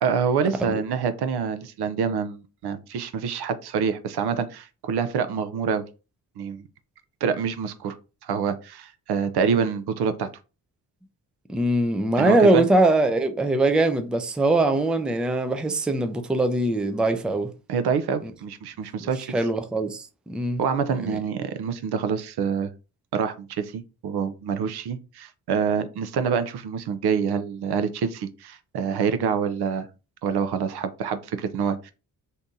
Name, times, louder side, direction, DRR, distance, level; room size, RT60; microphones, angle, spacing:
voice 1, 0.0-5.8 6.4-6.7 7.2-8.0 8.2-10.3 12.2-12.6 17.7-19.3 20.6-22.7 23.1-29.9 30.2-31.9, right 6 dB, 65° right, 0.6 m, -26 dB
voice 2, 11.5-17.5 18.2-18.3 19.0-20.6 21.0-21.1, right 2 dB, ahead, 0.4 m, -22 dB
2.8 x 2.6 x 3.6 m
cardioid pair, 75°, 41 cm